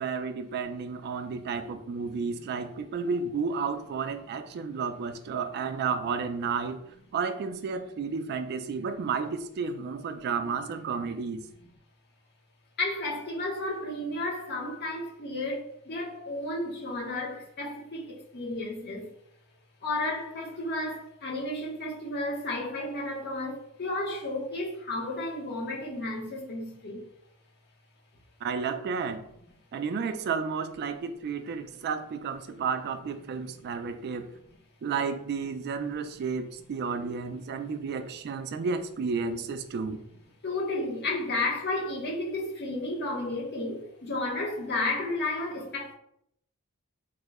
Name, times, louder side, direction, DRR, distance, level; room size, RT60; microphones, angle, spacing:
voice 1, 0.0-6.8 7.1-11.4 28.4-29.2 29.7-34.3 34.8-40.0, right 5 dB, 50° right, 0.3 m, -32 dB
voice 2, 12.8-19.1 19.8-27.0 40.4-45.9, left 2 dB, 50° left, 0.8 m, -32 dB
3.6 x 2.0 x 3.4 m
head